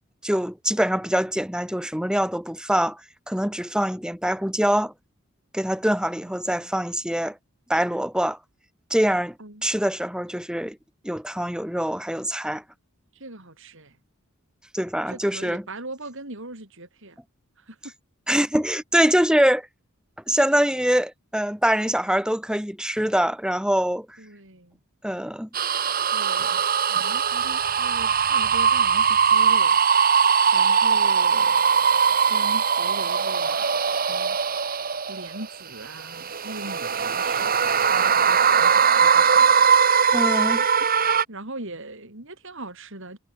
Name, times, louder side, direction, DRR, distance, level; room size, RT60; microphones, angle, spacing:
voice 1, 0.2-3.0 3.3-4.9 5.5-7.4 7.7-8.4 8.9-9.4 9.6-10.8 11.0-12.6 14.7-15.6 18.3-19.7 20.3-24.2 25.0-25.5 40.1-40.6, equal, 5° right, 5.2 m, -24 dB
voice 2, 13.1-14.0 15.1-17.2 17.6-17.9 24.2-24.8 26.1-26.6 26.9-29.8 30.5-31.6 32.2-34.4 35.1-39.5 40.8-43.2, right 2 dB, 60° right, 7.4 m, -40 dB
sound 1, 25.5-35.4 36.0-41.2, right 6 dB, 45° right, 2.8 m, -20 dB
head